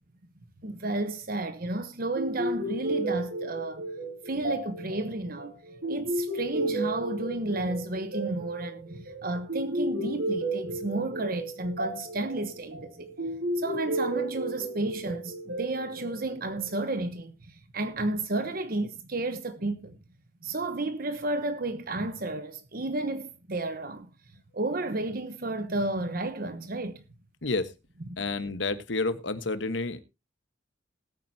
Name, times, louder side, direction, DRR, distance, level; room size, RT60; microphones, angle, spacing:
voice 1, 0.6-3.8 4.2-13.1 13.6-20.0 20.4-24.1 24.5-27.0, right 2 dB, 50° right, 1.1 m, -32 dB
sound 1, 2.2-16.9, right 1 dB, 85° right, 6.2 m, -33 dB
voice 2, 28.2-30.0, left 3 dB, 75° left, 1.3 m, -30 dB
19.5 x 9.1 x 2.8 m
head